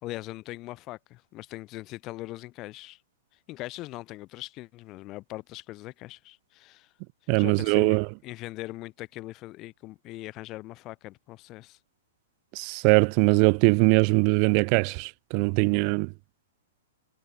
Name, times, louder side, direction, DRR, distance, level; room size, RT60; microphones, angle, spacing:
voice 1, 0.0-3.0 3.5-6.9 7.4-11.8, left 18 dB, 35° left, 1.4 m, -40 dB
voice 2, 7.3-8.1 12.5-16.1, right 40 dB or more, 40° right, 0.7 m, -21 dB
hypercardioid pair, 110°, 0 cm